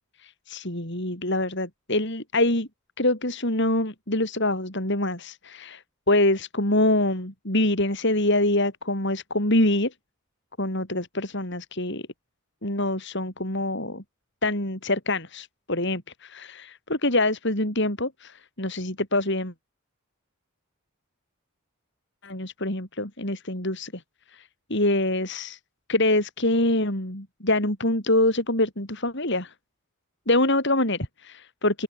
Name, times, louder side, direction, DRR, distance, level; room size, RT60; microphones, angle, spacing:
voice 1, 0.2-2.7 3.0-9.9 10.6-12.0 12.6-14.0 14.4-19.5 22.2-24.0 24.3-25.6 25.9-29.5 30.3-31.8, left 1 dB, 55° left, 5.8 m, -25 dB
open air
head